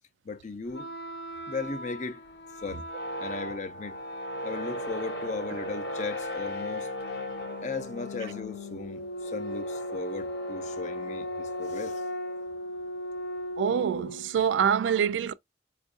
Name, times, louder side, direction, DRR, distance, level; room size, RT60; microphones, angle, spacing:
voice 1, 0.3-0.9 1.5-2.2 2.6-2.9 3.2-4.0 4.4-6.9 7.6-12.0, left 4 dB, 40° left, 0.5 m, -36 dB
sound 1, 0.7-14.4, left 1 dB, 65° left, 0.9 m, -36 dB
voice 2, 13.6-15.3, right 8 dB, 85° right, 0.3 m, -25 dB
4.4 x 2.5 x 2.4 m
head